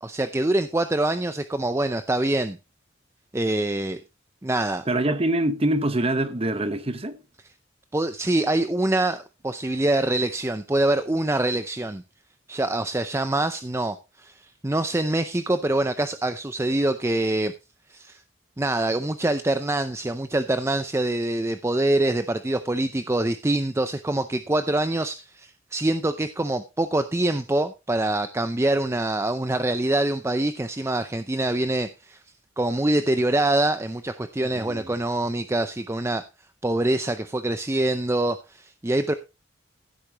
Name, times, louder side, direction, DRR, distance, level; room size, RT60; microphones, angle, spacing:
voice 1, 0.0-2.6 3.3-4.0 4.4-4.8 7.9-12.0 12.5-17.5 17.9-18.2 18.6-32.2 32.6-36.3 36.6-39.1, right 1 dB, 15° right, 0.5 m, -25 dB
voice 2, 4.9-7.2 34.4-34.9, right 1 dB, 30° right, 1.1 m, -25 dB
15.5 x 8.6 x 3.0 m
head